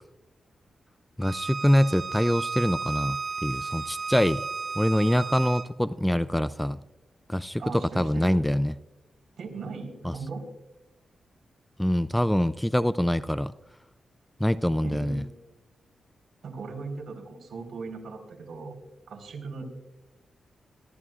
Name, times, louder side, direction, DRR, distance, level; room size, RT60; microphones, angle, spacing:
voice 1, 1.2-4.4 4.8-6.8 7.3-8.7 10.0-10.1 11.8-13.5 14.4-15.2, equal, 5° left, 15 dB, 0.4 m, -24 dB
Bowed string instrument, 1.2-5.7, right 5 dB, 40° right, 0.8 m, -33 dB
voice 2, 7.6-8.3 9.4-10.4 14.8-15.3 16.4-18.8 19.1-19.6, right 4 dB, 70° right, 1 dB, 4.2 m, -38 dB
25.5 x 14.0 x 2.4 m, 0.95 s
wide cardioid pair, 105°, 0 cm